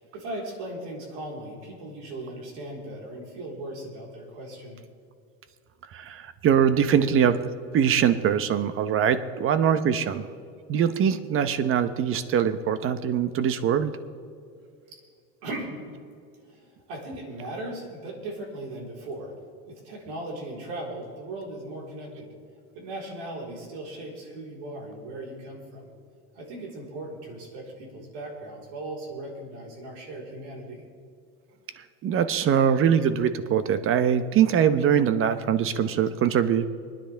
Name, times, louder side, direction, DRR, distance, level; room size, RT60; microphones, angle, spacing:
voice 1, 0.0-4.8 8.9-9.0 14.9-15.0 15.4-15.8 16.4-19.3 19.7-22.3 22.7-25.9 26.3-30.9, right 1 dB, 75° right, -1 dB, 4.1 m, -38 dB
voice 2, 5.9-7.5 7.7-10.3 10.7-13.9 32.0-36.7, right 8 dB, 40° right, 12 dB, 0.9 m, -22 dB
24.0 x 10.0 x 3.4 m, 2.4 s
supercardioid pair, 115°, 34 cm